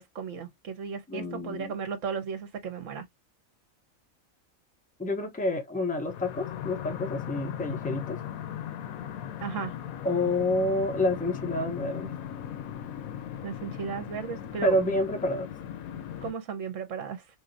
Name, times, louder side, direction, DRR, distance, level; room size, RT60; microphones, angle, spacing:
voice 1, 0.0-3.1 9.4-9.7 13.4-14.8 16.2-17.2, right 6 dB, 65° right, 1.3 m, -35 dB
voice 2, 1.1-1.7 5.0-8.2 10.0-12.1 14.6-15.5, left 1 dB, 10° left, 0.6 m, -28 dB
sound 1, 6.1-16.3, left 10 dB, 85° left, 1.1 m, -38 dB
4.0 x 2.8 x 2.6 m
omnidirectional pair, 1.4 m